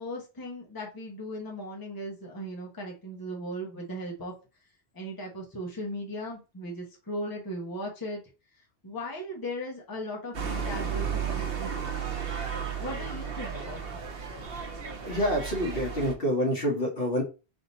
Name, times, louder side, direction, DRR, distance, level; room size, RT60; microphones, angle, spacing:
voice 1, 0.0-4.3 4.9-8.2 8.8-12.0 12.8-13.8, equal, 20° left, -1 dB, 0.9 m, -37 dB
sound 1, 10.3-16.1, right 7 dB, 65° right, 1.1 m, -33 dB
voice 2, 15.0-17.2, equal, 60° left, 0 dB, 1.4 m, -27 dB
3.4 x 2.8 x 4.0 m, 0.31 s
omnidirectional pair, 1.1 m